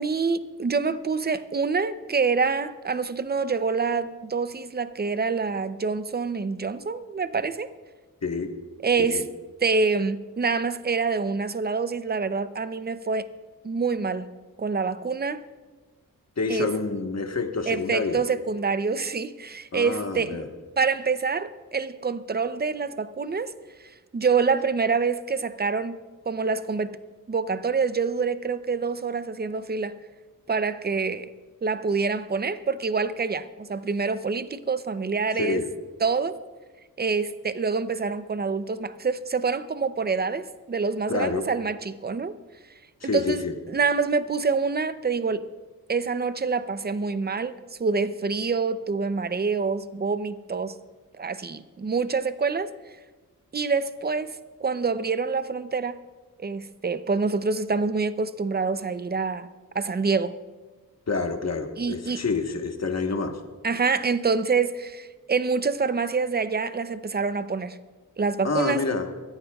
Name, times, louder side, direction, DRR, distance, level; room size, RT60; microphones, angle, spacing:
voice 1, 0.0-7.7 8.8-9.3 9.6-13.3 13.6-14.3 14.6-15.4 16.5-16.7 17.7-20.4 20.8-23.5 24.1-26.0 26.3-27.0 27.3-30.0 30.5-31.3 31.6-35.6 36.0-36.4 37.0-42.3 43.0-43.4 43.7-45.5 45.9-50.8 51.2-52.7 53.5-54.4 54.6-56.0 56.4-59.5 59.7-60.4 61.8-62.2 63.6-67.8 68.2-68.9, right 4 dB, 30° right, 0.6 m, -26 dB
voice 2, 8.2-8.5 9.0-9.2 16.4-18.2 19.7-20.5 35.3-35.7 41.1-41.5 43.0-43.5 61.1-63.4 68.4-69.1, left 4 dB, 50° left, 1.3 m, -28 dB
23.5 x 14.5 x 2.4 m
wide cardioid pair, 90°, 34 cm